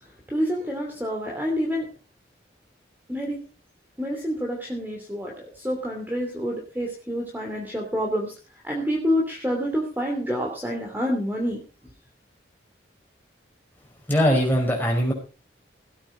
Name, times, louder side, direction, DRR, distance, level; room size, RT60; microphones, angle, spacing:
voice 1, 0.0-1.9 3.1-3.4 4.0-8.3 8.6-11.6, equal, 10° right, 0 dB, 2.8 m, -28 dB
voice 2, 14.1-15.1, equal, 10° left, -1 dB, 5.0 m, -21 dB
16.5 x 8.8 x 5.0 m, 0.36 s
head